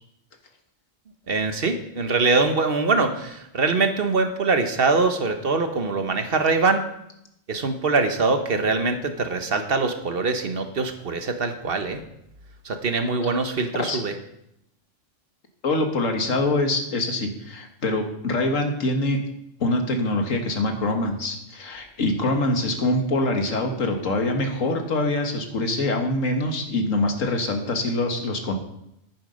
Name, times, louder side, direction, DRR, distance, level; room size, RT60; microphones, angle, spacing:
voice 1, 1.3-6.8 7.5-12.0 12.6-14.1, right 3 dB, 50° right, 7 dB, 1.2 m, -23 dB
voice 2, 15.6-19.2 19.6-28.5, left 2 dB, 85° left, 4 dB, 1.9 m, -24 dB
10.5 x 8.6 x 5.3 m, 0.79 s
omnidirectional pair, 1.3 m